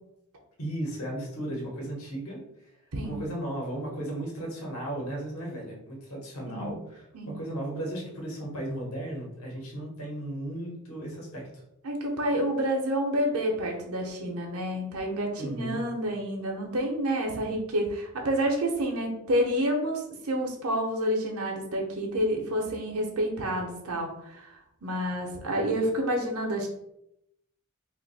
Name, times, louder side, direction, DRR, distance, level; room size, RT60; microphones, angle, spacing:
voice 1, 0.6-2.4 3.0-11.6 15.4-15.8, right 1 dB, 70° left, -2 dB, 1.1 m, -35 dB
voice 2, 11.8-26.7, equal, 80° right, 1 dB, 0.7 m, -29 dB
2.6 x 2.5 x 4.0 m, 0.80 s
head